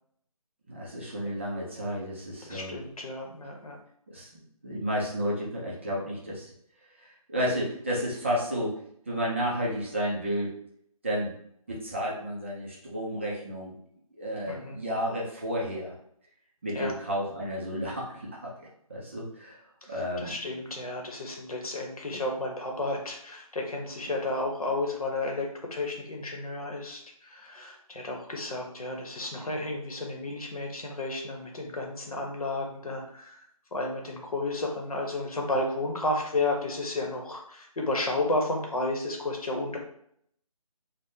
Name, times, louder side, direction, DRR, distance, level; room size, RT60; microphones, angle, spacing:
voice 1, 0.7-2.8 4.1-4.3 4.6-6.5 7.0-8.8 9.1-10.5 11.0-11.3 11.7-13.7 14.2-15.9 16.6-19.6 19.9-20.3, equal, 20° right, -5 dB, 0.4 m, -32 dB
voice 2, 2.4-3.8 14.5-14.8 16.7-16.9 19.8-33.4 33.7-39.8, left 2 dB, 75° left, 1 dB, 0.9 m, -32 dB
3.3 x 2.1 x 2.6 m, 0.68 s
figure-of-eight pair, 155°, 19 cm